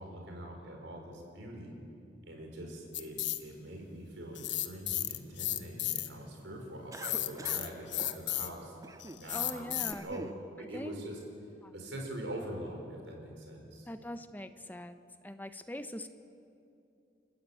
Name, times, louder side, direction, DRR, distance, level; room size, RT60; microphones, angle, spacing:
voice 1, 0.0-1.7 2.3-8.8 9.1-10.2 10.6-11.2 11.7-13.9, right 1 dB, 75° right, 1 dB, 5.1 m, -43 dB
sound 1, 2.9-3.4 4.3-6.1 6.9-8.6 9.0-9.9, left 14 dB, 75° left, 1.1 m, -33 dB
Cough, 6.9-7.7 8.0-8.2 8.8-9.2 9.7-10.4, right 2 dB, 15° right, 0.5 m, -45 dB
voice 2, 9.3-10.1 10.6-11.0 11.6-11.7 13.8-15.0 15.2-16.1, left 1 dB, 10° left, 9 dB, 0.8 m, -42 dB
29.5 x 14.0 x 8.5 m, 2.7 s
head